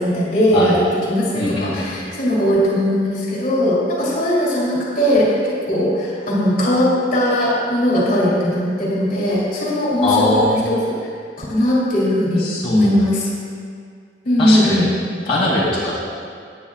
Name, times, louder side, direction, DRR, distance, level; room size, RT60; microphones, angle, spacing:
voice 1, 0.0-11.0 11.4-13.3 14.2-14.9, equal, 50° left, -5 dB, 3.1 m, -19 dB
voice 2, 1.3-1.9 10.0-10.6 12.4-12.9 14.4-14.9 15.3-16.1, left 2 dB, 30° left, -10 dB, 2.4 m, -21 dB
17.5 x 9.7 x 2.4 m, 2.1 s
head